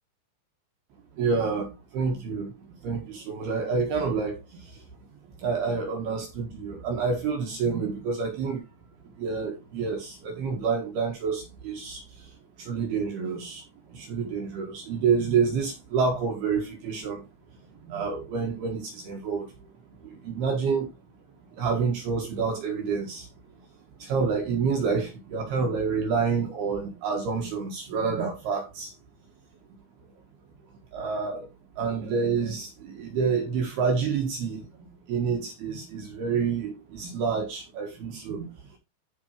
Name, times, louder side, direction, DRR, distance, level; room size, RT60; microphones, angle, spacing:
voice 1, 1.1-4.9 5.4-8.6 9.0-17.3 17.5-19.7 20.0-20.9 21.5-23.3 23.5-23.6 24.0-29.0 30.9-31.5 31.8-38.8, right 5 dB, 70° right, 3.5 m, -28 dB
14.0 x 5.3 x 3.2 m
omnidirectional pair, 5.0 m